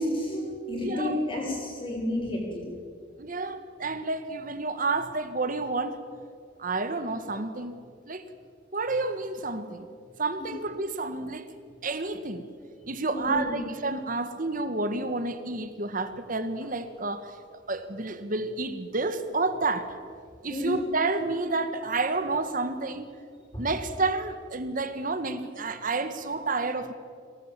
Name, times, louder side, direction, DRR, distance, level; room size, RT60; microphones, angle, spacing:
voice 1, 0.2-2.6 13.1-13.7 20.5-20.7 23.5-23.6, left 1 dB, 25° left, -2 dB, 6.4 m, -31 dB
voice 2, 0.8-1.2 3.2-6.0 6.6-7.8 8.1-8.2 8.7-9.9 10.2-11.5 11.8-12.5 12.9-20.0 20.4-23.1 23.6-26.9, right 3 dB, 45° right, 10 dB, 1.5 m, -30 dB
24.0 x 18.5 x 7.6 m, 2.3 s
head